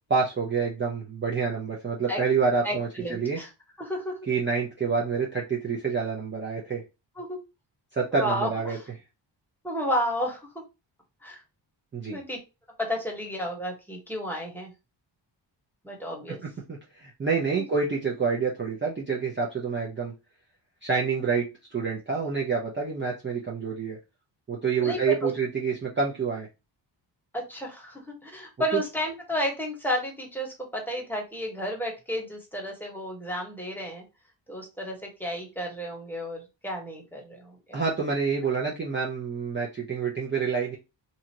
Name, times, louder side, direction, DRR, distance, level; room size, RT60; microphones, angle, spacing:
voice 1, 0.1-3.4 4.3-6.8 7.9-8.8 11.9-12.2 16.4-20.1 20.8-24.0 24.5-26.5 37.7-40.8, right 5 dB, 25° right, -3 dB, 0.7 m, -27 dB
voice 2, 2.6-3.5 3.8-4.1 7.2-7.4 8.1-8.8 9.6-10.5 11.2-11.4 12.1-12.4 12.8-14.7 15.8-16.4 24.8-25.3 27.3-34.0 34.5-37.8, equal, 5° left, -1 dB, 1.2 m, -32 dB
2.8 x 2.5 x 2.8 m, 0.26 s
cardioid pair, 90°, 44 cm